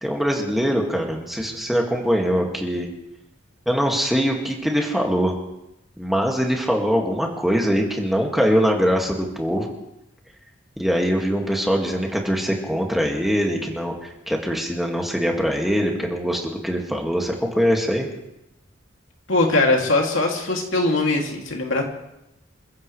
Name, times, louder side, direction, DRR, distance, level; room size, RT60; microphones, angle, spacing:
voice 1, 0.0-2.9 3.7-5.3 6.0-9.7 10.8-13.9 14.3-18.1, equal, ahead, 0 dB, 2.1 m, -22 dB
voice 2, 19.3-21.8, left 2 dB, 75° left, 1 dB, 2.7 m, -21 dB
28.0 x 15.0 x 3.3 m, 0.88 s
head